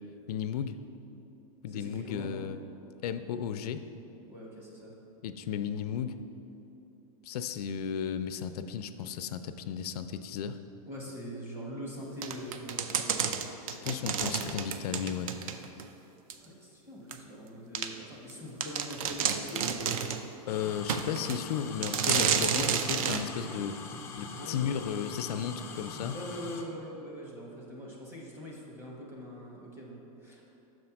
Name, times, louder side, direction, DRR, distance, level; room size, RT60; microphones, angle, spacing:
voice 1, 0.3-0.8 1.6-2.6 3.0-3.8 5.2-6.1 7.2-10.6 13.8-15.3 20.5-23.8 24.2-26.1, left 8 dB, 85° left, 10 dB, 0.4 m, -34 dB
voice 2, 1.7-2.3 4.3-4.9 10.9-13.2 14.0-14.5 16.4-19.9 22.2-22.7 24.2-24.6 26.0-30.4, equal, 10° right, -3 dB, 1.0 m, -43 dB
sound 1, 12.2-15.9 16.3-16.4 17.1-17.2 17.7-17.9 18.3-18.4 18.6-20.2 20.9-21.4 21.8-23.2, right 7 dB, 65° right, 0.5 m, -30 dB
sound 2, 20.5-26.6, left 4 dB, 15° left, 0.3 m, -43 dB
6.4 x 4.3 x 5.8 m, 3.0 s
supercardioid pair, 165°, 19 cm